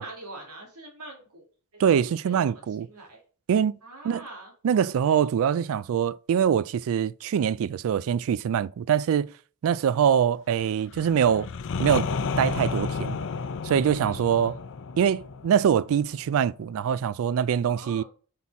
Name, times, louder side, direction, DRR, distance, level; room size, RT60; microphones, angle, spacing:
voice 1, 0.0-1.4 2.2-2.5 2.8-3.2 3.8-4.5 14.0-14.5 17.7-18.0, right 2 dB, 90° right, 2.3 m, -43 dB
voice 2, 1.8-2.9 3.5-3.7 4.0-4.3 4.6-9.3 9.6-11.5 11.8-12.1 12.4-13.2 13.6-14.6 15.0-18.0, right 8 dB, 65° right, 0.3 m, -24 dB
sound 1, 10.9-16.6, left 4 dB, 60° left, 0.5 m, -32 dB
5.5 x 4.2 x 4.7 m
head